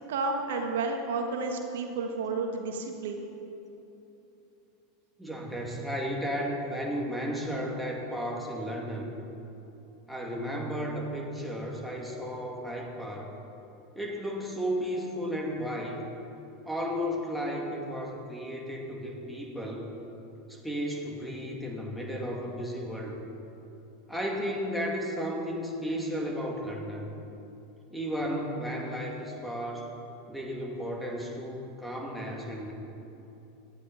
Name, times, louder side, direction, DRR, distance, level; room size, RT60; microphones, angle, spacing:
voice 1, 0.1-3.3, right 3 dB, 60° right, 3 dB, 1.4 m, -31 dB
voice 2, 5.2-9.1 10.1-13.3 14.0-16.0 16.7-19.9 20.5-23.2 24.1-27.1 27.9-29.9 30.3-32.7, equal, ahead, -1 dB, 2.5 m, -34 dB
17.5 x 12.0 x 4.3 m, 3.0 s
figure-of-eight pair, 85°, 0 cm